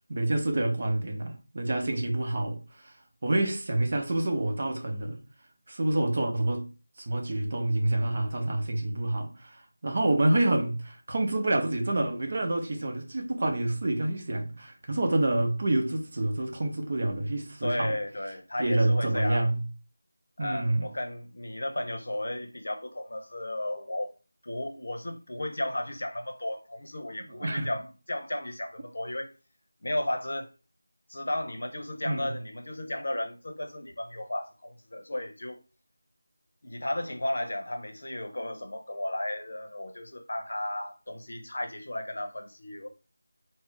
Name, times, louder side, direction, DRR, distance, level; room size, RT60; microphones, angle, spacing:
voice 1, 0.1-2.9 3.2-5.2 5.7-6.7 7.0-18.0 18.6-19.6 20.4-20.9 27.3-27.7 32.0-32.3, right 1 dB, 40° right, 0.6 m, -28 dB
voice 2, 17.6-19.5 20.4-24.1 24.4-29.3 29.8-30.5 31.1-35.6 36.6-42.9, left 1 dB, 65° left, 0.6 m, -34 dB
2.4 x 2.0 x 3.7 m
figure-of-eight pair, 170°, 0 cm